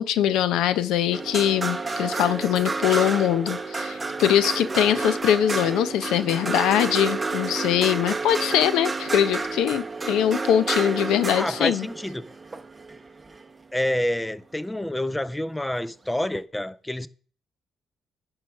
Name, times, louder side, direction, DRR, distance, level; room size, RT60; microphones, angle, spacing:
voice 1, 0.0-11.9, left 10 dB, 90° left, 0.6 m, -22 dB
sound 1, 1.1-13.5 15.1-15.2, right 3 dB, 20° right, 0.8 m, -30 dB
voice 2, 11.3-12.2 13.7-17.1, left 1 dB, 10° left, 0.5 m, -28 dB
10.5 x 4.8 x 5.9 m
cardioid pair, 90°, 0 cm